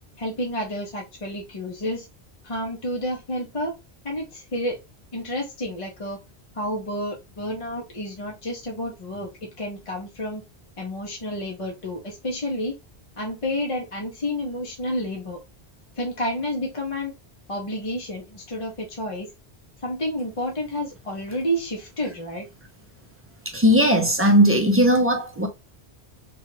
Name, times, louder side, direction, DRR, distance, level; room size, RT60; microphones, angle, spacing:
voice 1, 0.2-2.1 2.4-3.7 4.0-4.8 5.1-6.2 6.5-10.4 10.8-12.8 13.2-15.4 16.0-17.1 17.5-19.3 19.8-22.5, equal, 35° left, 0.7 m, -30 dB
voice 2, 23.5-25.5, equal, 15° right, 0.5 m, -18 dB
3.0 x 2.4 x 2.9 m
omnidirectional pair, 1.1 m